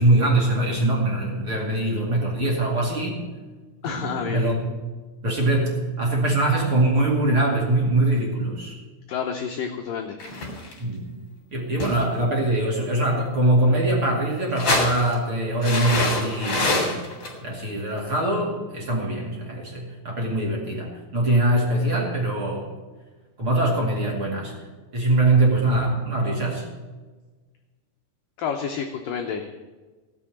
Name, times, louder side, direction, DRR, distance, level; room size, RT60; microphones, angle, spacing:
voice 1, 0.0-3.2 3.8-4.6 5.2-8.7 10.8-11.1 11.5-17.0 17.4-22.6 23.4-24.5 24.9-26.6, right 2 dB, 35° right, -2 dB, 2.6 m, -22 dB
voice 2, 3.8-4.5 9.1-10.2 28.4-29.6, left 7 dB, 80° left, 3 dB, 2.0 m, -29 dB
sound 1, 10.2-10.8 11.8-12.2 14.4-15.1 15.6-17.3 18.0-18.1, left 2 dB, 40° left, 3.8 m, -25 dB
17.0 x 6.9 x 9.1 m, 1.3 s
omnidirectional pair, 5.1 m